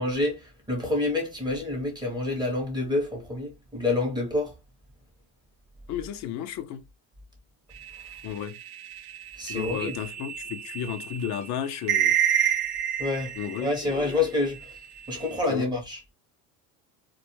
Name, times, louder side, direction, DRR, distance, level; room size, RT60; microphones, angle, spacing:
voice 1, 0.0-4.5 9.4-10.0 13.0-14.7 15.1-16.0, left 2 dB, 10° right, 0.8 m, -28 dB
voice 2, 5.9-6.8 8.2-8.6 9.5-12.1 13.4-14.2 15.5-15.7, left 9 dB, 50° left, 0.5 m, -33 dB
sound 1, 7.8-14.1 14.5-15.4, right 10 dB, 55° right, 0.5 m, -29 dB
2.2 x 2.0 x 2.9 m
supercardioid pair, 115°, 38 cm